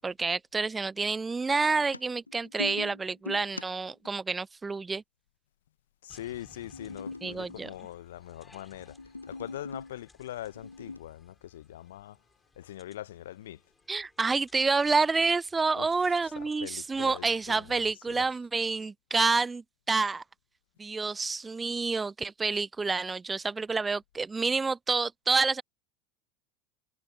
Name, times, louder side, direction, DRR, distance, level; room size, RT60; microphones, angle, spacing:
voice 1, 0.0-5.0 7.2-7.7 13.9-20.2 20.8-25.6, right 4 dB, 15° right, 0.3 m, -28 dB
sound 1, 1.8-4.1 6.3-8.1 8.6-10.0 10.5-11.0, left 3 dB, 85° left, 0.9 m, -41 dB
voice 2, 6.0-9.0 9.3-12.2 12.6-13.6 15.7-18.3, left 13 dB, 65° left, 1.2 m, -43 dB
sound 2, 6.1-17.8, left 3 dB, 10° left, 7.6 m, -61 dB
figure-of-eight pair, 75°, 0 cm